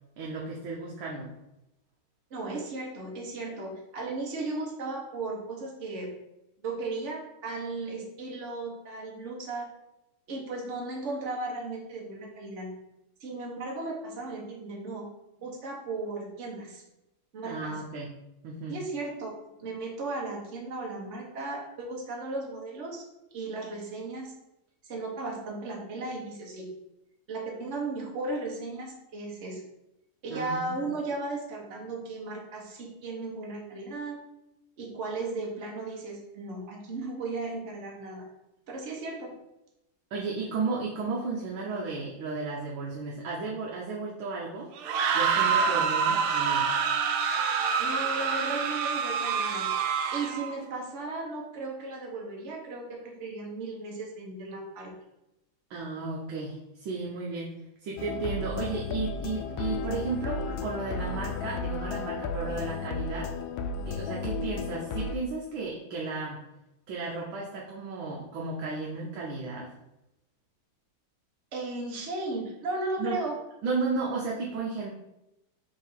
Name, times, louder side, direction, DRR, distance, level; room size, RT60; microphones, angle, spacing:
voice 1, 0.2-1.3 17.4-18.1 18.4-18.8 30.3-30.9 40.1-44.7 45.1-46.7 55.7-57.5 57.8-63.3 63.9-66.4 66.9-69.7 73.0-73.2 73.6-74.9, right 3 dB, 70° right, -3 dB, 1.6 m, -34 dB
voice 2, 2.3-6.1 6.6-9.7 10.3-12.7 13.2-15.1 15.4-16.8 17.3-17.8 18.7-19.3 19.6-23.0 23.3-24.3 24.8-26.7 27.3-29.6 30.2-34.2 34.8-38.3 38.7-39.4 47.8-49.7 50.1-54.9 71.5-73.4, right 3 dB, 40° right, -1 dB, 1.3 m, -36 dB
sound 1, 44.8-50.5, right 6 dB, 85° right, 1.5 m, -26 dB
sound 2, 58.0-65.1, left 4 dB, 75° left, 1.3 m, -33 dB
4.9 x 3.6 x 5.6 m, 0.91 s
omnidirectional pair, 2.3 m